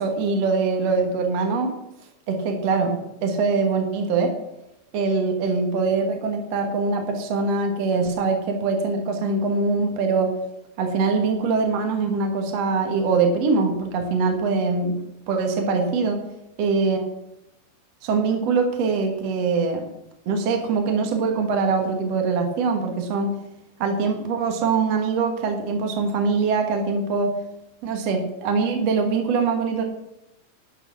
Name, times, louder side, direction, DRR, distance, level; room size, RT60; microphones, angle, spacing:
voice 1, 0.0-1.7 2.3-4.3 4.9-10.3 10.8-14.9 15.3-16.2 16.6-17.0 18.0-19.9 20.3-23.4 23.8-27.3 27.8-29.8, right 4 dB, 55° right, 4 dB, 2.0 m, -23 dB
11.5 x 6.6 x 7.5 m, 0.87 s
omnidirectional pair, 4.3 m